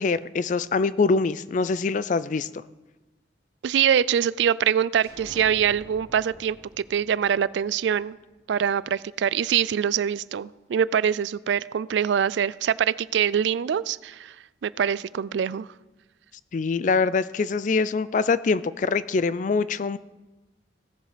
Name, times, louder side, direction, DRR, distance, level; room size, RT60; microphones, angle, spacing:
voice 1, 0.0-2.5 16.5-20.0, left 4 dB, 45° left, 17 dB, 0.4 m, -24 dB
voice 2, 3.6-6.6 6.9-8.2 8.5-14.3 14.6-15.7, right 8 dB, 75° right, 19 dB, 0.3 m, -24 dB
sound 1, 5.0-8.7, equal, 15° left, 2.7 m, -49 dB
16.5 x 7.4 x 5.0 m, 1.1 s
head